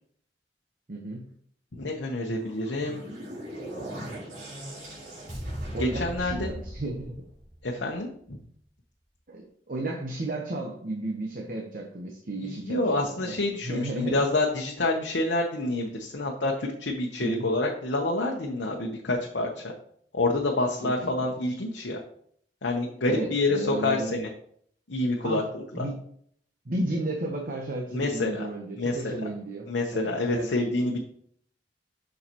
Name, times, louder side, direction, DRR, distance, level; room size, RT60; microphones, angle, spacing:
voice 1, 0.9-1.3 5.7-7.2 9.3-12.8 13.2-13.4 13.6-14.3 17.2-17.4 20.8-20.9 23.1-24.1 25.2-25.5 25.7-26.0 26.6-30.5, right 1 dB, 50° right, 0 dB, 1.0 m, -33 dB
voice 2, 1.7-3.0 5.8-6.5 7.6-8.4 12.4-19.7 20.1-22.0 22.6-24.3 24.9-25.9 27.9-28.5 28.8-29.1 29.7-31.0, left 2 dB, 80° left, 0 dB, 0.9 m, -28 dB
sound 1, 2.4-7.8, right 1 dB, 80° right, 3.2 m, -38 dB
6.9 x 6.5 x 3.0 m, 0.63 s
head